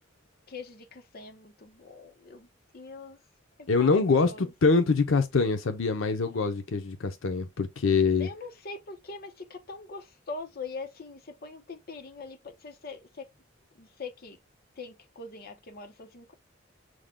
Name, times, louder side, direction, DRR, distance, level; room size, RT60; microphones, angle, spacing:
voice 1, 0.5-2.5 2.7-3.2 3.6-4.5 8.2-13.3 13.7-14.4 14.8-16.3, left 4 dB, 50° left, 0.8 m, -43 dB
voice 2, 3.7-8.3, left 4 dB, 85° left, 0.6 m, -24 dB
6.3 x 2.2 x 3.5 m
head